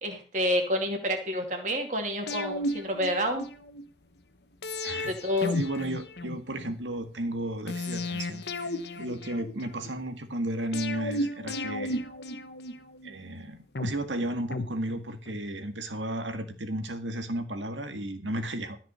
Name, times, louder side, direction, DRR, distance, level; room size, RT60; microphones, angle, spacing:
voice 1, 0.0-3.5 5.1-5.5, equal, 40° right, 3 dB, 2.5 m, -29 dB
sound 1, 2.3-3.8 4.6-6.8 7.7-9.9 10.7-13.1 13.8-15.4 15.7-15.8, left 1 dB, 65° left, 1.1 m, -34 dB
voice 2, 5.5-12.0 13.0-18.8, right 1 dB, 90° right, 7 dB, 1.9 m, -34 dB
13.5 x 6.0 x 6.6 m, 0.38 s
head